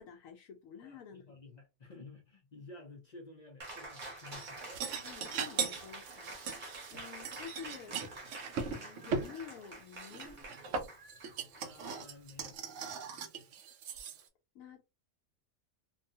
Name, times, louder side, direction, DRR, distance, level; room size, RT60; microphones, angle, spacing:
voice 1, 0.0-1.2 5.0-10.5 14.5-14.8, left 7 dB, 75° left, 1.0 m, -50 dB
voice 2, 0.8-4.6 4.9-5.2 6.9-7.1 11.6-12.6, left 2 dB, 55° left, 0.4 m, -53 dB
Cheering, 3.6-12.5, right 2 dB, 40° right, 0.9 m, -48 dB
sound 1, 4.4-9.3 10.0-14.2, right 5 dB, 65° right, 0.8 m, -39 dB
2.7 x 2.3 x 2.6 m
omnidirectional pair, 1.4 m